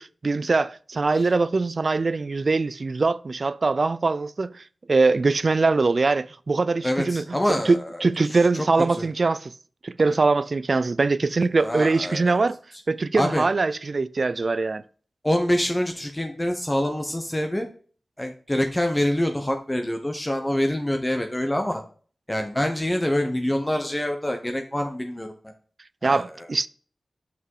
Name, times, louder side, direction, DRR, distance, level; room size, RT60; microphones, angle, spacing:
voice 1, 0.0-7.2 7.7-9.5 9.8-12.6 12.9-14.8 26.0-26.7, right 3 dB, 60° right, 0.3 m, -22 dB
voice 2, 6.8-8.0 8.5-8.6 8.9-9.1 11.6-12.4 13.1-13.4 15.2-17.7 18.2-21.8 22.3-25.3 26.0-26.5, left 1 dB, 20° left, 0.9 m, -26 dB
6.0 x 5.5 x 4.7 m
cardioid pair, 55°, 0 cm